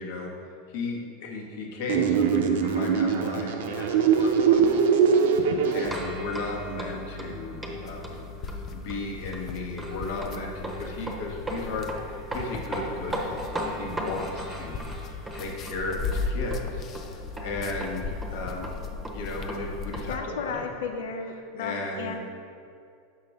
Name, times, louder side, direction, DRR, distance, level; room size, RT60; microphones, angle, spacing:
voice 1, 0.0-20.6 21.6-22.2, left 2 dB, 65° left, 0 dB, 1.2 m, -35 dB
sound 1, 1.9-5.9, right 6 dB, 80° right, 0.6 m, -22 dB
sound 2, 5.8-20.1, equal, 5° right, 0.9 m, -37 dB
sound 3, 7.8-20.2, left 4 dB, 35° left, 0.5 m, -37 dB
voice 2, 20.1-22.2, left 5 dB, 85° left, 4 dB, 0.6 m, -34 dB
6.8 x 5.7 x 3.4 m, 2.4 s
supercardioid pair, 130°, 0 cm